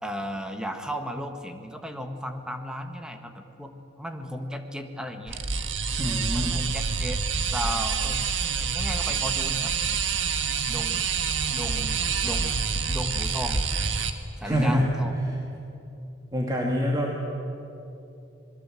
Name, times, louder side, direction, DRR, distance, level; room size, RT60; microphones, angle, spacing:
voice 1, 0.0-5.4 6.3-8.3 8.5-9.7 10.7-11.0 11.5-12.6 12.9-13.6 14.4-15.2, equal, 5° right, 5 dB, 1.6 m, -35 dB
sound 1, 5.3-14.1, right 5 dB, 90° right, 1.6 m, -27 dB
voice 2, 6.0-6.6 14.4-14.9 16.3-17.2, equal, 20° right, -2 dB, 2.3 m, -25 dB
26.0 x 21.5 x 7.7 m, 2.8 s
head